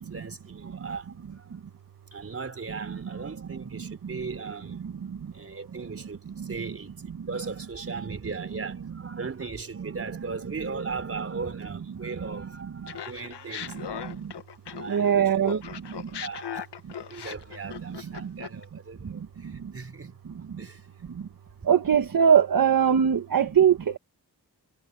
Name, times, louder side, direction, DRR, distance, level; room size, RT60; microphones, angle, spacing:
voice 1, 0.0-1.5 2.1-4.8 5.3-6.9 7.3-13.8 14.8-15.6 16.2-16.7 17.1-20.2 20.6-20.9, right 4 dB, 35° right, 4.3 m, -38 dB
Laughter, 12.9-15.1 15.4-18.6, left 9 dB, 85° left, 1.6 m, -38 dB
voice 2, 14.9-15.6 21.7-24.0, right 8 dB, 55° right, 1.6 m, -20 dB
wide cardioid pair, 145°, 40 cm